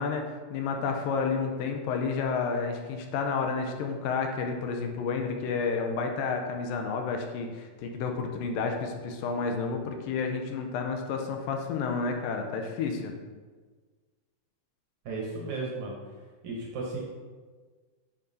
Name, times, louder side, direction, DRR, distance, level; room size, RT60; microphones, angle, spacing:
voice 1, 0.0-13.2, left 5 dB, 80° left, 4 dB, 2.3 m, -30 dB
voice 2, 15.1-16.0 16.4-17.0, right 3 dB, 65° right, -2 dB, 2.0 m, -34 dB
10.0 x 5.4 x 2.7 m, 1.4 s
omnidirectional pair, 4.2 m